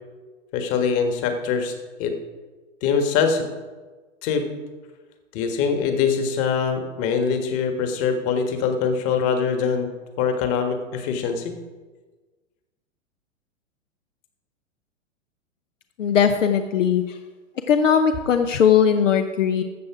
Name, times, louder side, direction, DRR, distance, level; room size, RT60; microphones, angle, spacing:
voice 1, 0.5-1.7 2.0-2.1 2.8-3.4 4.2-4.4 5.3-9.9 10.2-11.6, left 6 dB, 35° left, 6 dB, 1.6 m, -23 dB
voice 2, 16.0-17.2 17.7-19.6, left 7 dB, 70° left, 6 dB, 0.8 m, -19 dB
13.5 x 7.5 x 4.8 m, 1.3 s
figure-of-eight pair, 105°, 38 cm